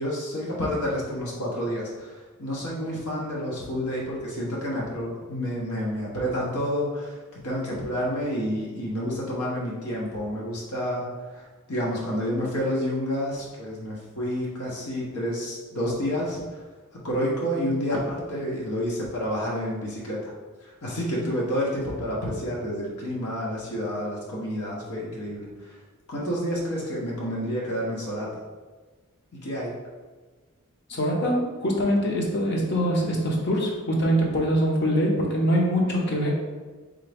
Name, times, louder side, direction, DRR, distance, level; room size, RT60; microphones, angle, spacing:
voice 1, 0.0-16.6 17.0-20.3 20.6-25.8 26.1-28.3 29.3-29.7, equal, 80° left, -4 dB, 1.2 m, -29 dB
voice 2, 30.9-36.3, equal, 50° left, -1 dB, 0.9 m, -23 dB
3.8 x 3.7 x 3.5 m, 1.4 s
head